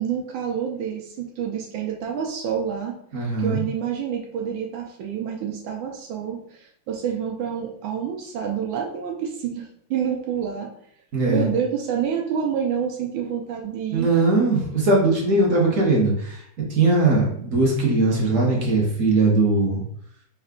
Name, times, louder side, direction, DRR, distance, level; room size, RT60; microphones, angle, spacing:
voice 1, 0.0-2.9 3.4-10.7 11.3-14.1, right 8 dB, 85° right, 0 dB, 1.4 m, -28 dB
voice 2, 3.1-3.6 11.1-11.5 13.9-16.4 16.7-19.8, right 2 dB, 55° right, -2 dB, 1.0 m, -20 dB
4.4 x 2.3 x 3.6 m, 0.68 s
omnidirectional pair, 2.1 m